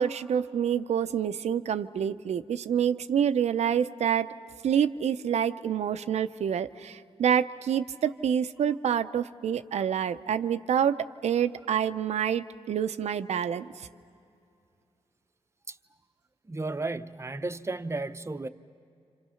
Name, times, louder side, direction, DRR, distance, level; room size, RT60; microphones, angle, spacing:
voice 1, 0.0-4.3 4.6-13.9, right 8 dB, 80° right, 0.6 m, -27 dB
voice 2, 16.5-18.5, right 2 dB, 25° right, 0.7 m, -33 dB
29.5 x 26.5 x 5.7 m
cardioid pair, 70°, 11 cm